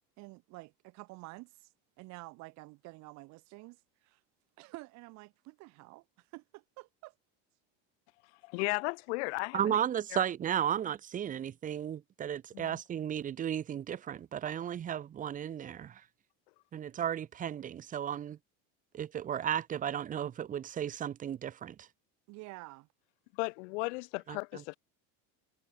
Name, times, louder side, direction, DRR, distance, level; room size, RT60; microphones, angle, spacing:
voice 1, 0.2-1.7 2.0-4.2 4.6-7.1 22.3-22.9, right 23 dB, 50° right, 4.1 m, -49 dB
voice 2, 8.4-9.8 10.1-10.2 12.5-12.8 23.3-24.8, left 27 dB, 75° left, 1.3 m, -35 dB
voice 3, 9.5-16.0 16.7-18.4 18.9-21.9 24.3-24.4, right 9 dB, 20° right, 1.5 m, -34 dB
cardioid pair, 170°, 35 cm